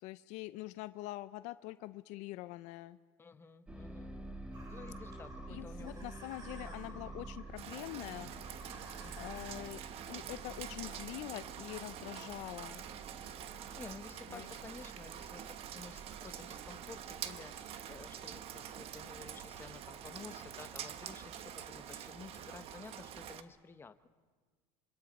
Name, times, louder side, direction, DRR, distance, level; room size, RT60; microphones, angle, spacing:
voice 1, 0.0-3.0 5.5-8.8 9.2-9.8 10.1-12.8 14.3-14.5, left 17 dB, 60° left, 14 dB, 0.6 m, -45 dB
voice 2, 3.2-4.2 4.7-6.1 6.6-7.2 9.0-9.4 13.8-24.1, left 4 dB, 15° left, 10 dB, 1.1 m, -52 dB
sound 1, 3.7-20.6, right 2 dB, 10° right, 2.0 m, -51 dB
sound 2, 4.5-10.6, right 2 dB, 25° right, 4.9 m, -54 dB
Rain, 7.6-23.4, right 10 dB, 45° right, 1.2 m, -46 dB
26.0 x 25.5 x 5.4 m, 1.5 s
supercardioid pair, 125°, 14 cm